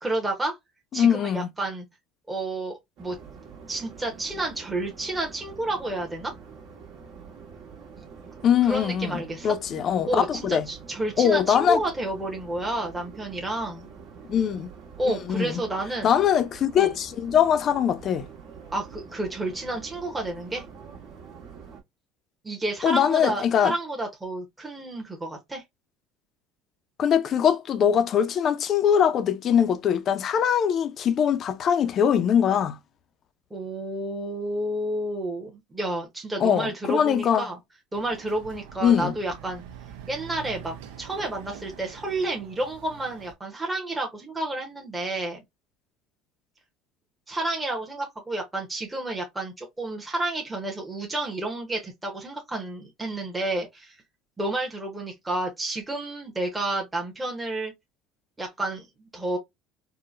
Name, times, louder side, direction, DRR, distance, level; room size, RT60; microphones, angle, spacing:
voice 1, 0.0-0.6 0.9-1.8 2.3-3.2 3.7-6.3 8.6-9.5 10.1-13.9 15.0-16.1 16.8-16.9 18.7-20.6 22.4-25.6 33.5-37.6 37.9-39.6 40.1-45.4 47.3-54.0 54.4-57.7 58.4-59.4, right 2 dB, 10° right, 0.8 m, -30 dB
voice 2, 0.9-1.5 8.4-10.6 11.2-11.8 14.3-14.7 15.0-15.6 16.0-18.3 22.8-23.7 27.0-32.8 36.4-37.5 38.8-39.1, left 8 dB, 45° left, 0.4 m, -22 dB
sound 1, 3.0-21.8, right 6 dB, 65° right, 1.2 m, -46 dB
Chatter / Car passing by / Motorcycle, 37.9-43.3, right 9 dB, 80° right, 0.6 m, -44 dB
3.7 x 2.1 x 2.4 m
supercardioid pair, 110°, 0 cm